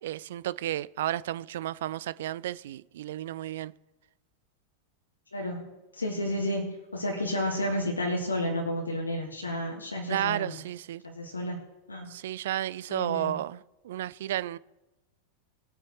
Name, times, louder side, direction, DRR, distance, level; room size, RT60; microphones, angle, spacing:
voice 1, 0.0-3.7 10.1-11.0 12.1-14.6, right 13 dB, 55° right, 0.3 m, -32 dB
voice 2, 5.3-10.6 11.0-11.6 11.9-12.1 12.9-13.4, left 1 dB, 80° left, 1.6 m, -31 dB
20.5 x 8.7 x 3.1 m
figure-of-eight pair, 90°, 0 cm